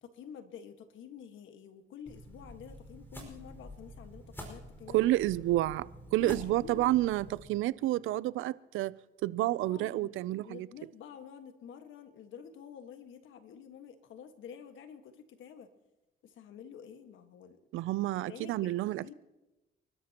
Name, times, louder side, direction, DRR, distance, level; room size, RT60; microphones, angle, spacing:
voice 1, 0.0-5.0 6.2-6.9 9.6-10.1 10.4-15.7 16.2-17.6 18.3-19.1, left 7 dB, 80° left, 1.6 m, -49 dB
sound 1, 2.1-7.5, equal, 10° left, 5.2 m, -48 dB
voice 2, 4.9-8.9 9.2-10.7 17.7-19.1, right 16 dB, 85° right, 0.5 m, -30 dB
29.5 x 12.5 x 2.9 m
cardioid pair, 90°, 20 cm